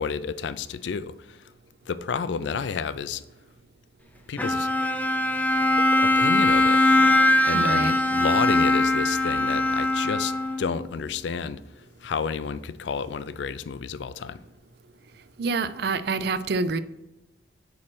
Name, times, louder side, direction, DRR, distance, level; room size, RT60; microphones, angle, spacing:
voice 1, 0.0-1.4 1.9-3.2 4.3-4.7 5.9-6.8 7.4-11.6 12.0-14.4, left 6 dB, 70° left, 0.4 m, -30 dB
Bowed string instrument, 4.4-10.8, left 1 dB, 10° left, 0.5 m, -21 dB
voice 2, 7.5-7.9 15.4-16.8, right 4 dB, 60° right, 0.4 m, -27 dB
8.5 x 3.2 x 5.9 m
head